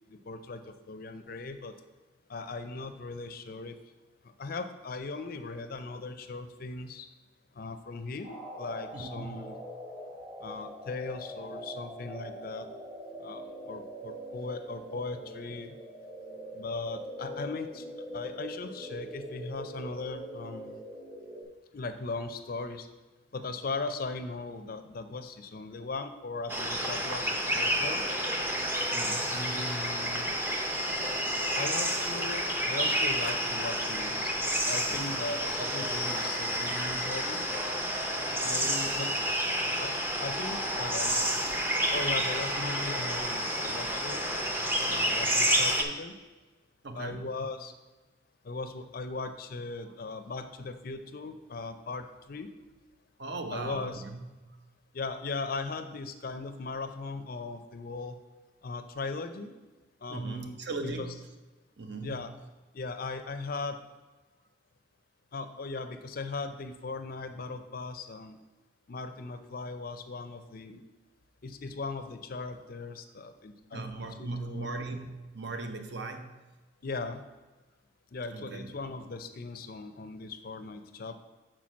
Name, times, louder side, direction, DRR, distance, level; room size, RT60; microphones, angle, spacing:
voice 1, 0.1-1.7 2.3-3.8 4.4-7.1 7.5-9.6 10.4-12.7 13.2-15.8 16.5-20.8 21.7-22.9 23.3-28.1 29.3-30.4 31.6-34.3 34.7-37.4 38.3-39.1 39.8-39.9 40.2-41.3 41.9-44.2 44.8-46.2 46.9-47.7 48.4-52.5 53.5-54.0 54.9-58.2 58.6-59.5 60.0-61.1 62.0-62.3 62.7-63.8 65.3-68.4 68.9-70.8 71.4-74.7 76.8-77.2 78.1-81.2, left 3 dB, 45° left, 9 dB, 0.5 m, -38 dB
sound 1, 8.2-21.4, equal, 35° right, 1.7 m, -43 dB
voice 2, 8.9-9.5 28.9-29.3 46.8-47.4 53.2-54.2 54.5-54.6 60.1-61.2 61.8-62.2 73.7-76.4 78.3-78.7, right 3 dB, 55° right, 6 dB, 0.7 m, -38 dB
sound 2, 26.5-45.8, equal, 10° right, 0.6 m, -30 dB
5.9 x 4.5 x 6.2 m, 1.2 s
head